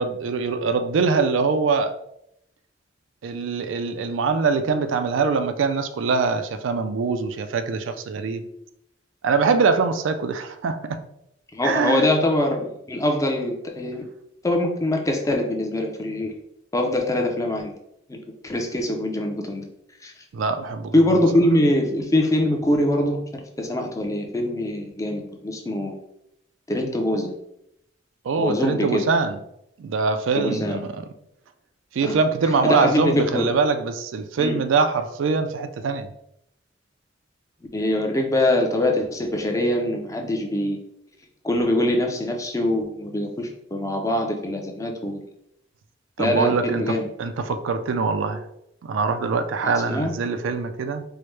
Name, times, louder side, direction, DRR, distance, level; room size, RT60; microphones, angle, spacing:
voice 1, 0.0-2.0 3.2-8.5 9.2-11.0 11.6-12.1 20.3-21.0 28.2-29.4 29.8-31.0 31.9-36.1 46.2-48.4 48.8-51.0, right 4 dB, 90° right, 9 dB, 0.4 m, -23 dB
voice 2, 11.5-14.0 14.4-16.3 16.7-17.7 18.1-18.2 18.4-19.7 20.0-20.1 20.9-26.0 26.7-27.3 28.4-29.0 30.4-30.8 32.0-32.2 32.5-33.5 34.4-34.6 37.7-40.8 41.4-45.2 46.2-47.1 49.6-50.2, left 1 dB, 15° left, 3 dB, 0.4 m, -23 dB
4.5 x 2.1 x 3.1 m, 0.78 s
head